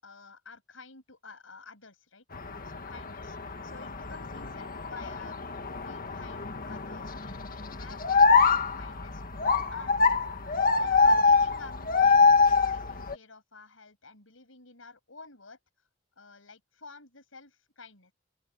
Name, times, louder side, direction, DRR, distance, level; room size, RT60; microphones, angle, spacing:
voice 1, 0.0-3.4 3.6-5.4 5.6-15.6 16.2-18.1, left 3 dB, 75° left, 6.8 m, -51 dB
sound 1, 2.3-13.1, left 4 dB, 45° left, 1.8 m, -25 dB
open air
head